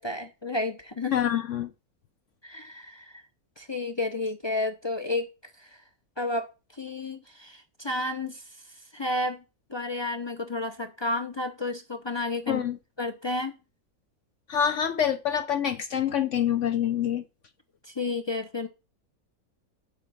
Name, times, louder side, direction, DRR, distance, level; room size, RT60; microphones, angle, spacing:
voice 1, 0.0-1.2 2.4-3.2 3.6-5.3 5.6-5.7 6.2-6.5 6.7-8.4 8.9-9.4 9.7-12.6 13.0-13.5 17.8-18.7, left 2 dB, 25° left, 0.6 m, -31 dB
voice 2, 1.1-1.7 12.5-12.8 14.5-17.2, left 9 dB, 60° left, 0.9 m, -26 dB
7.5 x 4.8 x 6.9 m
omnidirectional pair, 1.6 m